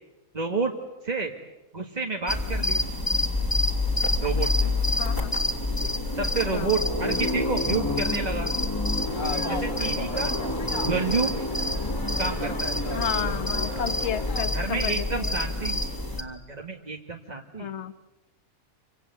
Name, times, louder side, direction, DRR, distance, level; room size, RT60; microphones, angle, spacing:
voice 1, 0.3-0.7 1.0-1.3 1.7-2.8 4.2-4.7 5.8-5.9 6.2-8.5 9.5-10.3 10.8-11.4 12.2-12.8 13.8-13.9 14.5-15.8 16.2-17.7, right 4 dB, 30° right, 1 dB, 1.7 m, -30 dB
sound 1, 2.3-16.2, left 2 dB, 15° left, 2.5 m, -27 dB
voice 2, 5.0-5.4 6.5-6.7 12.9-15.3 17.6-17.9, left 8 dB, 55° left, 12 dB, 1.4 m, -32 dB
sound 2, 9.0-14.5, left 3 dB, 35° left, 2.1 m, -37 dB
28.5 x 25.0 x 8.2 m, 1.0 s
omnidirectional pair, 1.5 m